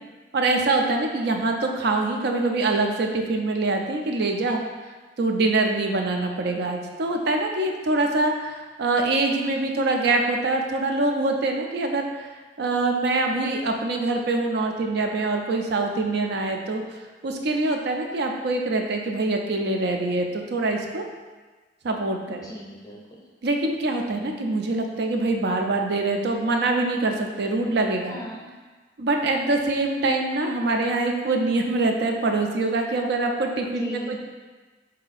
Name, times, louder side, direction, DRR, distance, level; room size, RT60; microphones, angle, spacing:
voice 1, 0.3-4.6 5.2-12.3 12.6-16.8 17.2-21.1 21.8-22.4 23.4-28.1 29.0-34.2, right 2 dB, 65° right, 3 dB, 0.5 m, -24 dB
voice 2, 22.4-23.2 28.1-28.5 33.8-34.1, equal, 20° left, -2 dB, 0.6 m, -38 dB
3.8 x 2.7 x 4.0 m, 1.3 s
head